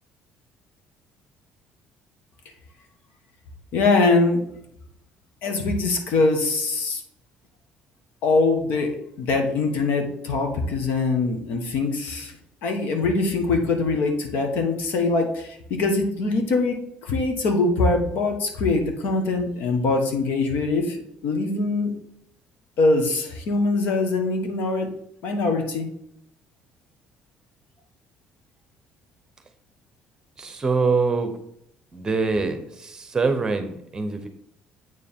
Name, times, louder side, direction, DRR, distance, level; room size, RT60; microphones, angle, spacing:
voice 1, 3.7-4.5 5.4-7.0 8.2-12.4 12.6-21.0 21.2-21.9 22.8-24.9 25.2-25.9, left 3 dB, 70° left, 4 dB, 1.4 m, -23 dB
voice 2, 30.4-31.3 31.9-34.3, right 4 dB, 20° right, 8 dB, 0.9 m, -24 dB
8.3 x 4.6 x 3.7 m, 0.73 s
cardioid pair, 155°, 3 cm